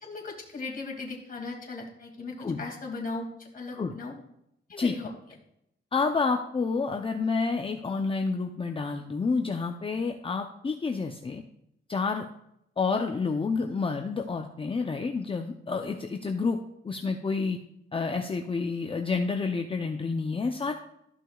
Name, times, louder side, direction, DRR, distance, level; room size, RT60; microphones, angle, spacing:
voice 1, 0.0-4.1 4.7-5.1, left 3 dB, 40° left, -1 dB, 2.4 m, -37 dB
voice 2, 5.9-11.4 11.9-12.2 12.8-16.6 16.8-17.6 17.9-20.7, left 4 dB, 25° left, 4 dB, 0.6 m, -29 dB
13.5 x 6.1 x 2.4 m, 0.79 s
cardioid pair, 100°, 21 cm